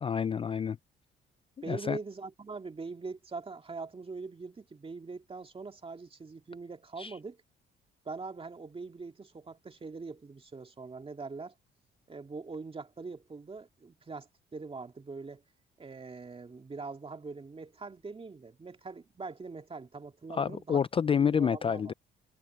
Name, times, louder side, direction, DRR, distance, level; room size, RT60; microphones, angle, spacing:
voice 1, 0.0-0.8 1.7-2.0 7.0-7.2 20.3-21.9, left 7 dB, 30° left, 0.3 m, -28 dB
voice 2, 1.6-7.4 8.1-11.5 12.1-15.4 15.8-20.8 21.1-21.9, right 4 dB, 30° right, 2.3 m, -42 dB
cardioid pair, 90°, 20 cm